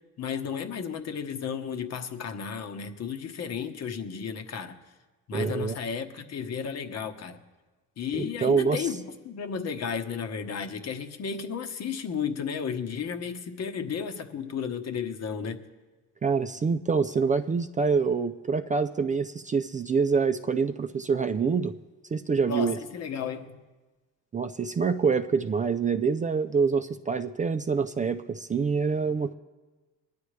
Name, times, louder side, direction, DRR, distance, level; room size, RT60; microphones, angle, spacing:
voice 1, 0.2-4.8 5.3-7.4 8.0-15.6 22.5-23.6, left 6 dB, 50° left, 1.2 m, -33 dB
voice 2, 5.3-5.8 8.1-8.9 16.2-21.7 22.1-22.8 24.3-29.3, right 5 dB, 25° right, 0.4 m, -26 dB
21.0 x 10.5 x 3.3 m
cardioid pair, 90°, 33 cm